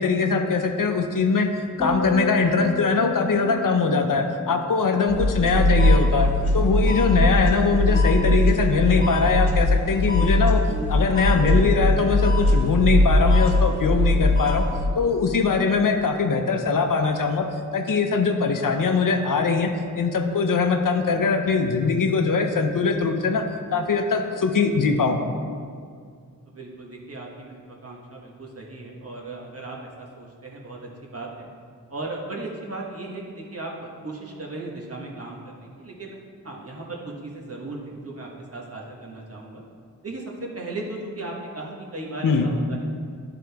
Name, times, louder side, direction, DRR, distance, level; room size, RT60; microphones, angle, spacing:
voice 1, 0.0-1.5 1.8-10.6 10.9-14.7 15.0-17.5 17.7-23.4 23.7-25.2 42.2-42.5, left 4 dB, 70° left, 5 dB, 0.6 m, -22 dB
sound 1, 1.8-6.2 6.5-6.9, left 3 dB, 25° left, 1.5 m, -33 dB
sound 2, 5.1-14.9, left 1 dB, 55° left, 1.3 m, -20 dB
voice 2, 26.5-31.5 31.9-36.2 36.4-39.6 40.0-42.9, right 2 dB, 45° right, -2 dB, 1.2 m, -36 dB
11.0 x 3.8 x 3.4 m, 2.1 s
wide cardioid pair, 90°, 33 cm